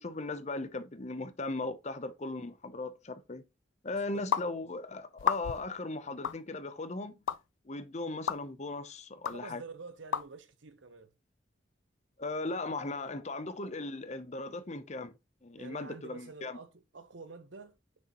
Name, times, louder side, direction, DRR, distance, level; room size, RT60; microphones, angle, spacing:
voice 1, 0.0-3.4 3.8-7.2 7.6-9.6 12.2-15.1 15.4-16.6, left 2 dB, 35° left, 0.7 m, -38 dB
voice 2, 3.9-4.3 9.3-11.1 15.6-18.0, right 4 dB, 85° right, 0.9 m, -48 dB
sound 1, 4.3-4.5 5.2-5.7 6.2-6.4 7.3-7.4 8.3-8.4 9.2-9.4 10.1-10.2, left 8 dB, 85° left, 0.4 m, -30 dB
6.5 x 5.5 x 2.9 m
head